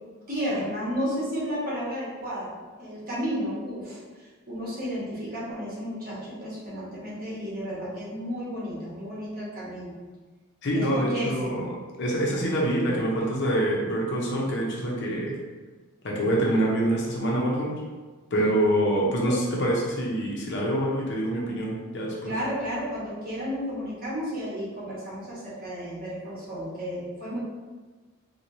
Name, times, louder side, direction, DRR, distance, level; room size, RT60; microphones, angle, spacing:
voice 1, 0.3-9.9 10.7-11.5 18.8-19.0 19.3-19.4 22.2-27.4, equal, 40° right, -7 dB, 1.1 m, -32 dB
voice 2, 10.6-11.7 12.0-15.3 16.0-17.7 18.3-22.3, right 1 dB, 55° left, -2 dB, 0.6 m, -25 dB
4.3 x 2.2 x 2.6 m, 1.3 s
head